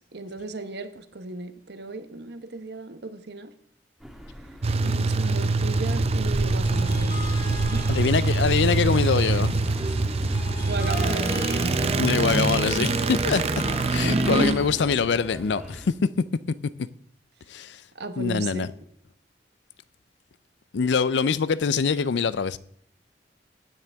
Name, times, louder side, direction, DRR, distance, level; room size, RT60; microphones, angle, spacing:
voice 1, 0.0-3.5 4.8-7.1 7.7-7.9 10.7-11.8 14.0-14.5 17.9-18.7, right 2 dB, 65° right, 1.0 m, -34 dB
sound 1, 4.0-15.9, equal, ahead, 1.5 m, -39 dB
sound 2, 4.6-15.8, right 3 dB, 35° right, 0.5 m, -24 dB
sound 3, 6.6-14.0, left 2 dB, 50° left, 5.2 m, -38 dB
voice 2, 7.9-9.5 11.9-16.6 17.5-17.8 18.2-18.7 20.7-22.6, left 5 dB, 75° left, 0.4 m, -24 dB
16.5 x 9.5 x 3.5 m
head